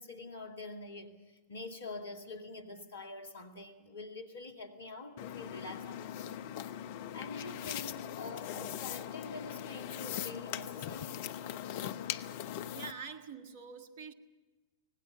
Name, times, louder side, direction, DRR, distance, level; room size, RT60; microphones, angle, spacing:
voice 1, 0.0-6.4 7.1-11.2, left 3 dB, 70° left, 2.2 m, -46 dB
sound 1, 5.2-12.9, left 10 dB, 50° left, 0.8 m, -40 dB
voice 2, 12.7-14.1, right 6 dB, 50° right, 1.6 m, -45 dB
25.5 x 19.5 x 6.7 m
figure-of-eight pair, 90°, 0 cm